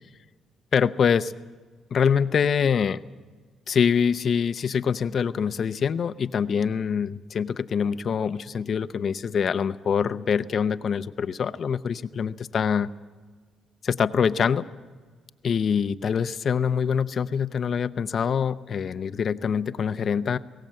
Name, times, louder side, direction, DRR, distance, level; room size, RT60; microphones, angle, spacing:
voice 1, 0.7-1.3 1.9-3.0 3.7-12.9 13.8-14.7 15.4-20.4, left 7 dB, 55° left, 13 dB, 0.7 m, -24 dB
21.0 x 17.5 x 7.7 m, 1.5 s
cardioid pair, 90°, 0 cm